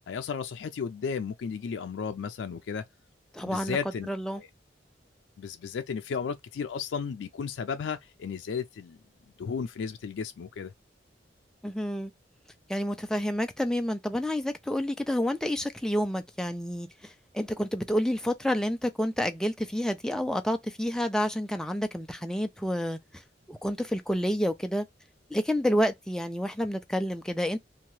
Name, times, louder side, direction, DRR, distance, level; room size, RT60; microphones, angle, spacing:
voice 1, 0.1-2.8 3.4-4.1 4.4-4.5 5.4-9.0 9.4-10.7, left 6 dB, 85° left, 0.4 m, -34 dB
voice 2, 3.3-3.8 4.1-4.4 11.6-12.1 12.7-23.0 23.5-24.9 25.3-27.6, equal, 5° left, 0.3 m, -29 dB
2.8 x 2.2 x 3.0 m
head